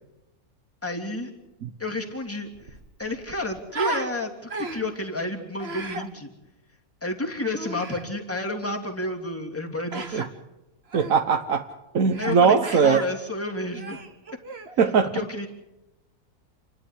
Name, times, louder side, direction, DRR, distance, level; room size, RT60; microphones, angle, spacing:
voice 1, 0.8-1.3 1.8-6.3 7.0-10.3 12.2-14.0 15.1-15.5, left 2 dB, 10° left, 1 dB, 2.9 m, -31 dB
Human voice, 2.1-2.2 2.5-4.1 4.5-5.0 5.6-6.1 7.5-8.1 9.9-10.3 10.9-11.1 12.1-12.4 12.6-13.1 13.7-14.8, right 3 dB, 45° right, 1.8 m, -34 dB
voice 2, 10.9-11.7 11.9-13.0 14.8-15.2, right 6 dB, 65° right, 6 dB, 1.4 m, -20 dB
29.5 x 12.0 x 9.9 m, 0.97 s
omnidirectional pair, 1.6 m